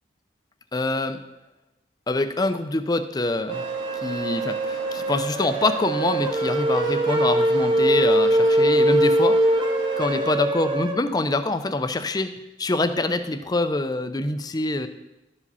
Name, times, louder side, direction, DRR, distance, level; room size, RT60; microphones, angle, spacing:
voice 1, 0.7-1.2 2.1-3.6 4.0-9.4 10.0-12.3 12.6-14.9, left 2 dB, 20° left, 9 dB, 0.5 m, -25 dB
sound 1, 3.5-11.0, right 1 dB, 25° right, 0.8 m, -22 dB
sound 2, 3.5-10.4, right 2 dB, 85° right, 1.0 m, -38 dB
12.0 x 4.9 x 5.5 m, 1.0 s
head